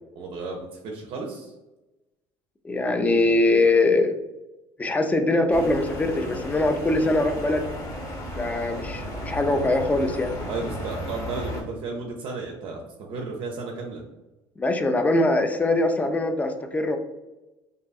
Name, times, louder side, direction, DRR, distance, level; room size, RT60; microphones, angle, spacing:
voice 1, 0.2-1.5 10.5-14.0, right 3 dB, 55° right, 0 dB, 0.4 m, -33 dB
voice 2, 2.6-4.1 4.8-7.6 8.4-10.3 14.6-17.0, left 2 dB, 15° left, 7 dB, 0.3 m, -22 dB
sound 1, 5.5-11.6, left 1 dB, 30° left, 0.9 m, -34 dB
2.6 x 2.5 x 2.3 m, 1.0 s
supercardioid pair, 95°, 11 cm